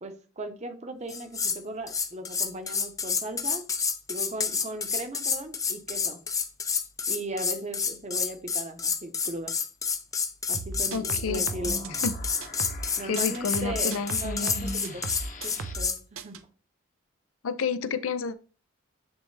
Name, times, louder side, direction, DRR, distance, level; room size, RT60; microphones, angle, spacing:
voice 1, 0.0-3.6 4.1-6.2 7.1-9.6 10.5-11.8 13.0-15.1 15.4-16.4, right 1 dB, 35° right, 7 dB, 0.9 m, -38 dB
sound 1, 1.1-1.6 1.9-16.0, left 6 dB, 15° left, 0.5 m, -29 dB
sound 2, 10.5-12.9 13.2-15.9 16.2-16.4, right 3 dB, 75° right, 0.6 m, -36 dB
sound 3, 10.7-15.7, left 4 dB, 40° left, 0.9 m, -46 dB
voice 2, 10.9-11.4 11.9-12.1 12.8-14.7 17.4-18.4, left 5 dB, 85° left, 13 dB, 0.5 m, -30 dB
9.7 x 3.3 x 3.2 m, 0.37 s
head